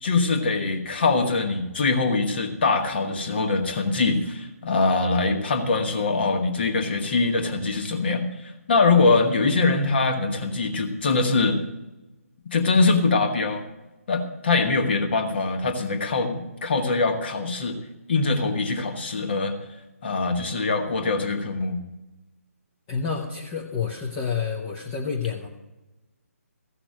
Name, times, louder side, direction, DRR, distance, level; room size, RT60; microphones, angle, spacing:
voice 1, 0.0-8.3 8.7-11.6 12.5-13.6 14.1-17.8 18.1-19.6 20.0-21.8, left 3 dB, 40° left, 4 dB, 1.8 m, -23 dB
voice 2, 22.9-25.5, left 6 dB, 20° left, -1 dB, 1.0 m, -29 dB
15.0 x 5.9 x 8.9 m, 1.0 s
figure-of-eight pair, 140°, 8 cm